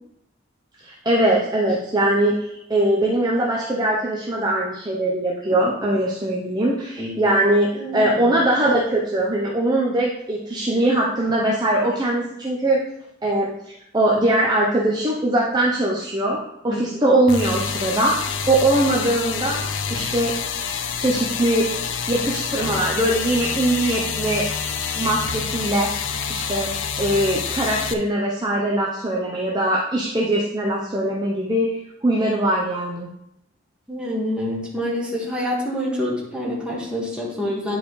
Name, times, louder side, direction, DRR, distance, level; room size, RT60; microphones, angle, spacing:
voice 1, 0.8-12.8 13.2-16.4 16.6-18.1 18.5-19.6 19.9-20.3 21.0-21.7 22.1-24.4 25.0-25.9 26.3-26.7 27.0-31.7 32.0-33.1, right 1 dB, 20° right, -4 dB, 0.8 m, -21 dB
voice 2, 7.7-8.3 16.7-16.8 33.9-37.8, left 1 dB, 5° right, -5 dB, 1.8 m, -27 dB
sound 1, 17.3-27.9, left 6 dB, 65° left, 0.6 m, -27 dB
10.5 x 4.8 x 3.2 m, 0.81 s
head